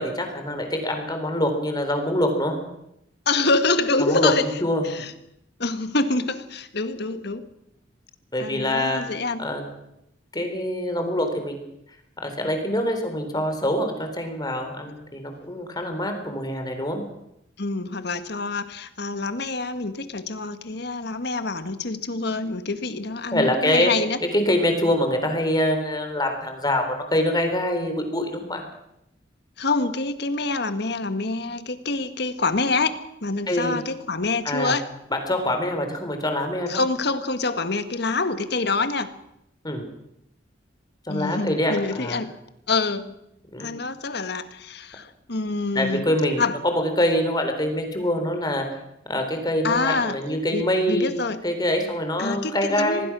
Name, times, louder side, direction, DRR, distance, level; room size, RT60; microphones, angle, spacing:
voice 1, 0.0-2.6 4.0-4.3 4.6-4.9 8.3-9.0 9.4-9.7 10.3-11.6 12.2-17.0 23.3-23.9 24.3-28.6 33.5-33.8 34.4-34.7 35.1-36.8 39.6-39.8 41.1-42.2 43.5-43.7 45.7-48.7 49.1-53.1, left 1 dB, 20° left, 5 dB, 3.9 m, -25 dB
voice 2, 3.3-5.1 5.6-7.5 8.4-9.5 17.6-24.2 29.6-34.9 36.7-39.2 41.1-42.3 42.7-43.2 43.6-46.1 46.4-46.6 49.6-50.2 50.5-51.4 52.2-53.0, left 3 dB, 60° left, 11 dB, 1.6 m, -26 dB
26.0 x 19.0 x 6.2 m, 0.80 s
head